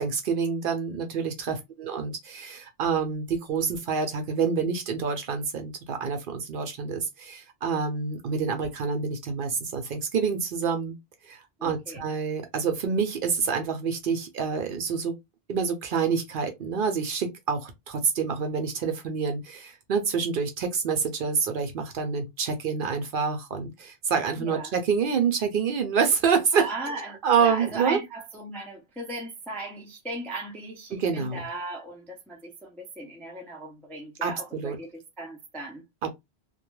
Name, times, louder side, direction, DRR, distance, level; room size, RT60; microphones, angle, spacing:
voice 1, 0.0-10.9 11.2-15.1 15.5-27.0 27.2-28.0 31.0-31.4 34.2-34.8 36.0-36.1, right 5 dB, 60° right, 0.7 m, -27 dB
voice 2, 11.6-12.0 24.4-24.7 26.5-35.8, right 2 dB, 5° left, 0.3 m, -37 dB
2.2 x 2.2 x 3.0 m
omnidirectional pair, 1.1 m